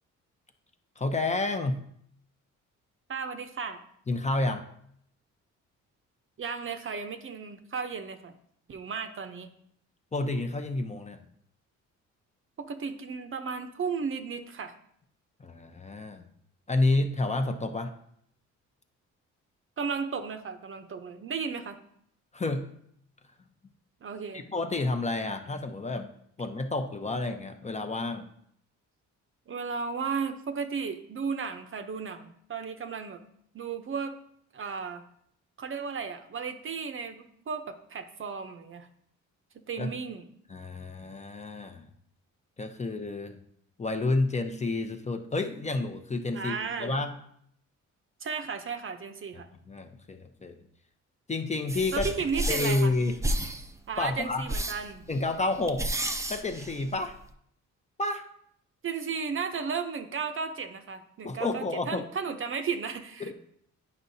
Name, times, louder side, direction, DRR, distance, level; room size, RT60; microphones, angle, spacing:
voice 1, 1.0-1.8 4.1-4.6 10.1-11.2 15.4-16.2 16.7-17.9 22.3-22.7 24.3-26.1 26.4-28.3 39.8-39.9 40.5-41.9 42.6-43.4 43.8-47.1 49.7-50.6 51.3-52.1 52.5-53.2 54.0-54.5 55.1-55.8 56.3-57.2 58.0-58.2 61.2-62.0 63.2-63.3, left 2 dB, 25° left, 6 dB, 0.7 m, -30 dB
voice 2, 3.1-3.8 6.4-8.3 8.7-9.5 12.6-14.7 19.8-21.8 24.0-24.4 29.5-33.2 33.5-34.1 34.5-35.0 35.6-38.9 39.7-40.2 46.3-46.9 48.2-49.5 51.9-52.9 53.9-55.0 58.8-63.3, right 5 dB, 45° right, 8 dB, 0.8 m, -34 dB
sound 1, 51.7-57.3, right 1 dB, 10° right, 0.6 m, -33 dB
9.6 x 5.6 x 2.8 m, 0.68 s
cardioid pair, 90°, 30 cm